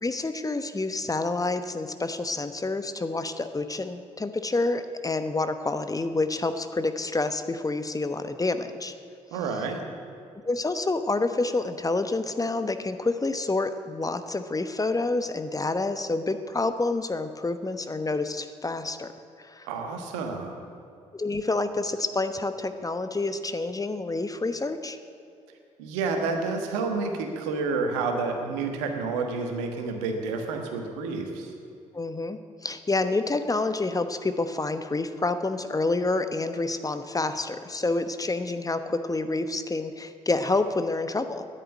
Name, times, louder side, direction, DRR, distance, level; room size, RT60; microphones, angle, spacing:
voice 1, 0.0-8.9 10.4-19.1 19.4-19.7 21.1-25.0 31.9-41.5, left 3 dB, 25° left, 10 dB, 1.0 m, -28 dB
voice 2, 9.3-9.8 19.6-20.6 25.8-31.5, right 4 dB, 80° right, 4 dB, 1.4 m, -29 dB
10.0 x 9.0 x 10.0 m, 2.6 s
hypercardioid pair, 45°, 15 cm